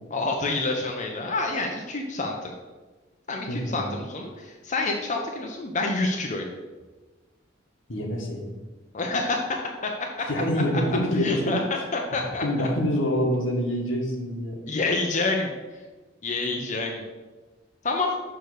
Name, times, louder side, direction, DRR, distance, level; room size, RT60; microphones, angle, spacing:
voice 1, 0.1-2.5 3.3-6.5 8.9-9.6 9.8-9.9 11.2-11.6 11.9-12.7 14.7-15.5 16.2-17.0 17.8-18.1, left 3 dB, 40° left, 1 dB, 0.7 m, -28 dB
voice 2, 3.5-4.0 7.9-8.5 10.3-11.6 12.1-14.6, equal, 75° left, 1 dB, 1.5 m, -26 dB
6.6 x 3.9 x 6.4 m, 1.3 s
head